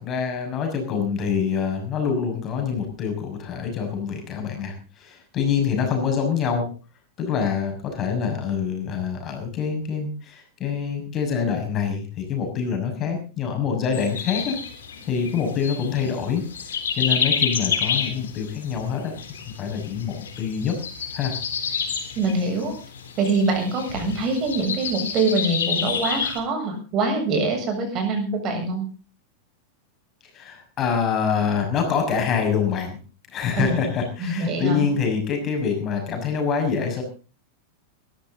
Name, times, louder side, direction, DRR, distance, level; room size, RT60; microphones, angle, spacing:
voice 1, 0.0-6.7 7.2-14.6 15.1-16.4 16.9-19.1 19.6-20.7 21.1-21.3 30.3-33.0 33.3-37.0, left 6 dB, 30° left, 3 dB, 6.4 m, -25 dB
sound 1, 13.9-26.4, left 7 dB, 65° left, 3.8 m, -29 dB
voice 2, 22.2-22.7 23.2-28.9 33.6-33.9 34.2-34.9, right 3 dB, 35° right, 4 dB, 7.5 m, -24 dB
21.5 x 13.5 x 4.0 m, 0.35 s
figure-of-eight pair, 90°, 0 cm